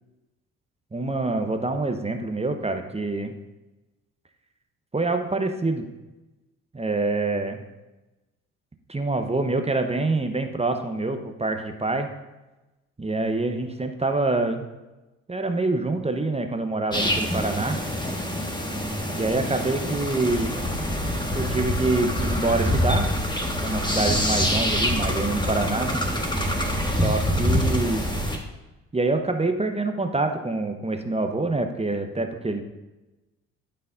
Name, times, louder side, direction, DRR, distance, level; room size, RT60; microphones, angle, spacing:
voice 1, 0.9-3.3 4.9-5.9 6.7-7.6 8.9-12.1 13.0-14.7 15.3-17.8 19.1-20.7 21.3-23.1 23.6-26.0 27.0-28.1 28.9-32.6, right 2 dB, 15° right, 6 dB, 0.9 m, -26 dB
sound 1, 16.9-28.4, equal, 10° left, 1.5 m, -25 dB
13.0 x 5.7 x 2.6 m, 1.0 s
hypercardioid pair, 45°, 39 cm